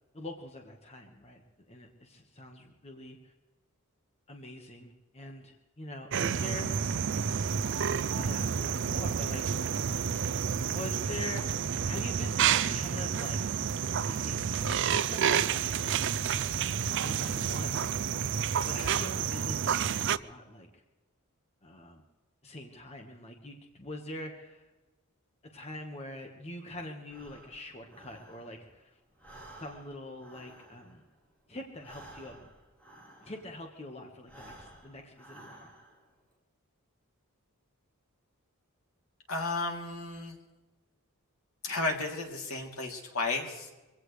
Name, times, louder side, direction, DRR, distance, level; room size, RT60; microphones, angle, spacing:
voice 1, 0.1-1.4 1.7-3.3 4.3-6.8 8.1-9.9 10.7-11.4 11.9-13.4 14.1-16.5 17.0-17.8 18.6-20.8 21.6-22.0 22.4-24.7 25.4-29.0 29.6-31.0 31.5-32.5 33.2-35.7, left 1 dB, 30° left, 3 dB, 1.4 m, -44 dB
sound 1, 6.1-20.2, right 7 dB, 55° right, 0.5 m, -30 dB
Breathing, 27.0-28.8 29.1-33.7 34.2-36.1, right 1 dB, 5° left, 4.3 m, -53 dB
voice 2, 39.3-40.4 41.6-43.7, left 3 dB, 75° left, 1 dB, 3.0 m, -33 dB
24.0 x 16.5 x 3.3 m, 1.1 s
head